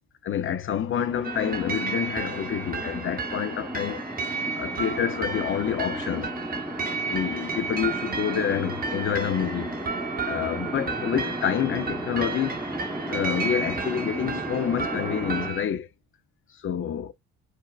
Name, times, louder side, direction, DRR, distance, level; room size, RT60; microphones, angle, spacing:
voice 1, 0.2-4.1 4.6-6.3 7.1-9.7 10.3-12.6 13.1-15.9 16.6-17.1, left 9 dB, 45° left, 0.5 m, -28 dB
sound 1, 0.8-15.5, right 1 dB, 5° right, 0.9 m, -35 dB
sound 2, 1.2-15.6, right 5 dB, 30° right, 0.8 m, -33 dB
4.5 x 2.0 x 2.3 m
cardioid pair, 90°, 30 cm